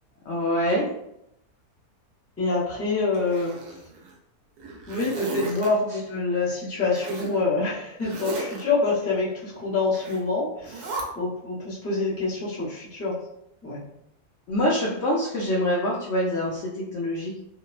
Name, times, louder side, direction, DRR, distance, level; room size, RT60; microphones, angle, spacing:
voice 1, 0.3-0.9 14.5-17.4, equal, 70° left, -4 dB, 0.6 m, -25 dB
voice 2, 2.4-3.5 4.9-10.9 11.1-13.1 13.6-13.8, left 3 dB, 15° left, -8 dB, 0.5 m, -26 dB
Zipper (clothing), 3.1-4.1 4.6-5.7 6.9-7.4 8.0-8.6 9.9-10.2 10.6-11.0, right 3 dB, 85° right, 1.1 m, -34 dB
2.9 x 2.0 x 2.4 m, 0.79 s
omnidirectional pair, 1.6 m